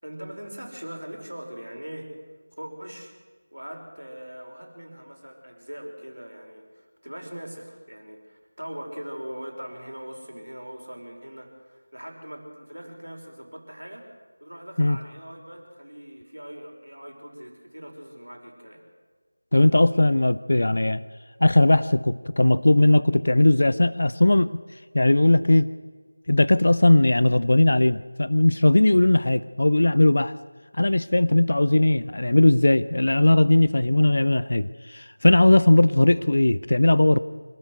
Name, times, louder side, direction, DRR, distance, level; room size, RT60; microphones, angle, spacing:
voice 1, 0.0-2.1 2.6-3.1 3.5-14.1 14.4-18.8, equal, 75° right, 2 dB, 5.6 m, -40 dB
voice 2, 19.5-21.0 21.4-24.5 24.9-25.7 26.3-30.3 30.8-37.2, left 1 dB, 45° left, 16 dB, 0.6 m, -19 dB
25.5 x 13.0 x 8.2 m, 1.5 s
figure-of-eight pair, 170°, 0 cm